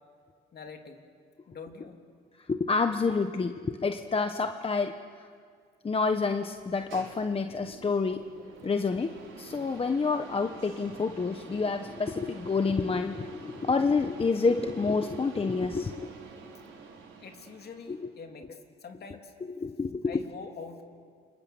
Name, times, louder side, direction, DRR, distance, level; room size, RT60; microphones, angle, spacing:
voice 1, 0.5-1.0 1.5-2.0 17.2-19.3 20.0-20.8, left 5 dB, 55° left, 4 dB, 3.1 m, -45 dB
voice 2, 2.4-5.3 5.8-8.2 8.6-16.1 17.9-18.1 19.5-20.2, left 4 dB, 30° left, 7 dB, 1.1 m, -28 dB
sound 1, 6.5-18.1, right 5 dB, 75° right, 4.6 m, -48 dB
29.0 x 25.5 x 7.3 m, 2.1 s
cardioid pair, 90°, 20 cm